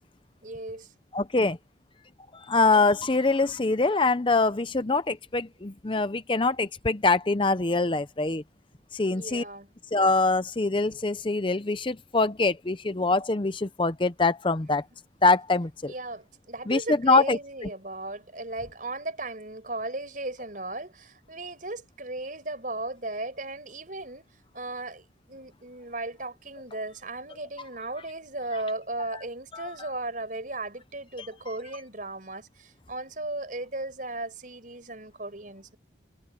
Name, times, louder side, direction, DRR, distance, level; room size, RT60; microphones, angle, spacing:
voice 1, 0.4-0.9 9.1-9.7 15.9-24.3 24.5-35.8, right 2 dB, 45° right, 5.4 m, -36 dB
voice 2, 1.1-1.6 2.5-8.4 8.9-9.4 9.9-14.8 15.2-15.9 16.7-17.4 29.5-29.7 31.2-31.3, left 3 dB, 25° left, 0.6 m, -24 dB
head